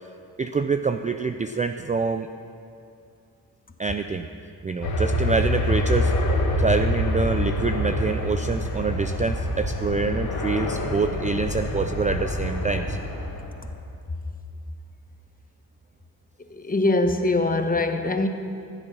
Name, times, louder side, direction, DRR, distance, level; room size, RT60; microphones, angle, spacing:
voice 1, 0.4-2.3 3.8-4.3 4.6-6.1 6.6-13.0, right 4 dB, 20° right, 8 dB, 0.4 m, -26 dB
sound 1, 4.8-13.6, left 1 dB, 65° left, 2.9 m, -26 dB
voice 2, 16.5-18.3, left 2 dB, 20° left, 6 dB, 1.1 m, -22 dB
15.0 x 7.8 x 6.1 m, 2.5 s
supercardioid pair, 60°, 40 cm